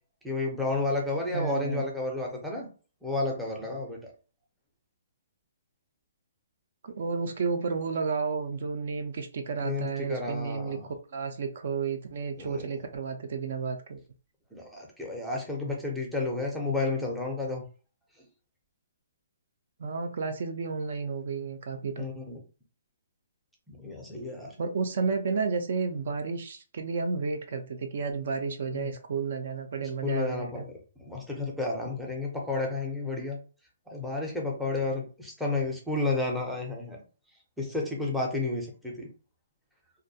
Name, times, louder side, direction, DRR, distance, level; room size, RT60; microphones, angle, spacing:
voice 1, 0.2-2.7 3.0-4.0 9.6-10.8 12.4-12.7 14.5-17.6 22.0-22.4 23.7-24.5 28.7-28.9 29.8-30.7 31.0-33.4 33.9-37.0 37.6-39.1, left 3 dB, ahead, 0.5 m, -31 dB
voice 2, 1.3-1.9 6.8-14.0 15.6-15.7 19.8-22.1 24.6-30.6, right 5 dB, 55° right, 0.4 m, -32 dB
2.3 x 2.1 x 2.6 m
hypercardioid pair, 165°, 0 cm